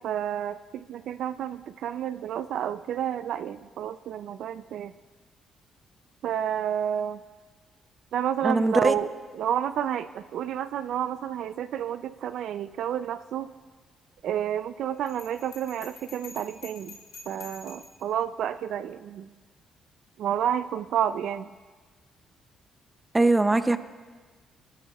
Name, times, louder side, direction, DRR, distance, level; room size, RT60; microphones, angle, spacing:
voice 1, 0.0-4.9 6.2-7.2 8.1-13.5 14.2-17.0 17.3-19.3 20.2-21.5, right 10 dB, 75° right, 13 dB, 0.4 m, -30 dB
voice 2, 8.4-8.9 23.1-23.8, right 2 dB, 15° right, 11 dB, 0.5 m, -21 dB
Bell, 15.1-18.0, left 5 dB, 75° left, 2.4 m, -47 dB
20.0 x 13.0 x 2.3 m, 1.4 s
cardioid pair, 115°, 0 cm